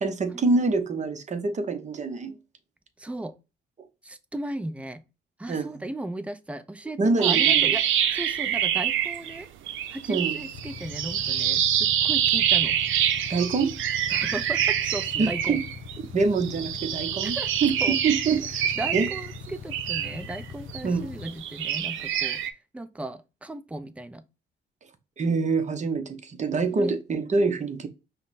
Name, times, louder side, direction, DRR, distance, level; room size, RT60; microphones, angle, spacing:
voice 1, 0.0-2.4 5.5-5.8 7.0-7.7 10.1-10.4 13.3-13.7 15.2-15.6 16.1-17.3 17.6-19.1 20.8-21.1 25.2-27.9, right 4 dB, 35° right, 0.9 m, -25 dB
voice 2, 3.0-3.3 4.0-5.0 5.4-9.5 9.9-12.8 14.1-15.6 17.2-17.5 17.8-18.0 18.8-22.4 22.7-24.2 26.7-26.9, right 1 dB, 5° right, 0.5 m, -36 dB
sound 1, 7.2-9.4 9.7-16.0 16.4-20.8 21.2-22.5, right 10 dB, 80° right, 0.6 m, -26 dB
Motorcycle / Idling, 10.5-21.3, left 6 dB, 50° left, 0.6 m, -42 dB
5.5 x 2.1 x 4.0 m
cardioid pair, 90°, 20 cm